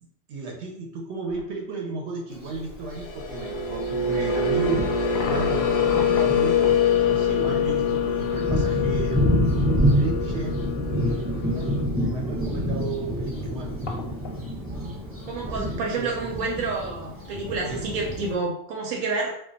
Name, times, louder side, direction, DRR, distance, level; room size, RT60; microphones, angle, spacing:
voice 1, 0.0-4.9 5.3-9.4 9.9-10.5 10.9-13.7 15.4-16.4 17.7-17.8, right 2 dB, 65° right, 1 dB, 0.8 m, -34 dB
sound 1, 1.3-1.5 2.3-2.4 4.5-6.8 9.3-9.4 9.7-9.8 13.2-13.3 13.5-14.4, left 3 dB, 90° left, 1.0 m, -35 dB
Thunder, 2.3-2.5 3.4-3.5 4.1-4.2 4.6-18.3, equal, 15° right, 0.4 m, -28 dB
sound 2, 2.8-11.9, left 6 dB, 65° left, 0.7 m, -25 dB
voice 2, 15.3-19.3, right 3 dB, 90° right, -1 dB, 1.0 m, -29 dB
2.2 x 2.2 x 3.8 m, 0.70 s
omnidirectional pair, 1.4 m